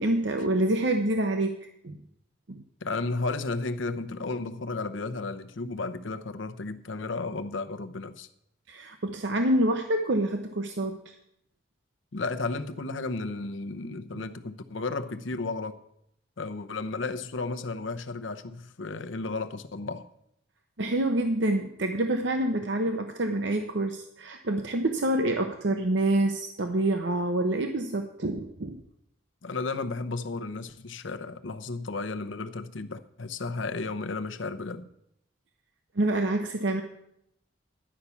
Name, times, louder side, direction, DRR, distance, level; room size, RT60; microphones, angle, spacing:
voice 1, 0.0-2.0 2.5-2.6 8.7-11.2 14.1-14.2 20.8-28.8 35.9-36.8, right 1 dB, 65° right, 0.8 m, -27 dB
voice 2, 2.8-8.3 12.1-15.8 16.4-20.1 29.4-34.9, left 3 dB, 75° left, 0.8 m, -33 dB
11.0 x 5.8 x 8.2 m
head